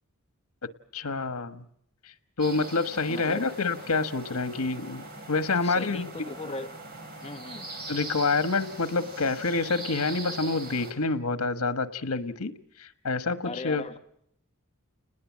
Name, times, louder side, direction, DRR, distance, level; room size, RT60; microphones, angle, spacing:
voice 1, 0.9-1.6 2.0-6.1 7.9-12.5 12.8-13.8, left 3 dB, 90° left, 10 dB, 1.3 m, -28 dB
sound 1, 2.4-10.9, right 2 dB, 45° right, 5.1 m, -41 dB
voice 2, 3.1-3.5 5.5-6.8 7.2-7.7 13.4-14.0, left 2 dB, 30° left, 7 dB, 1.1 m, -38 dB
30.0 x 20.0 x 7.3 m, 0.70 s
head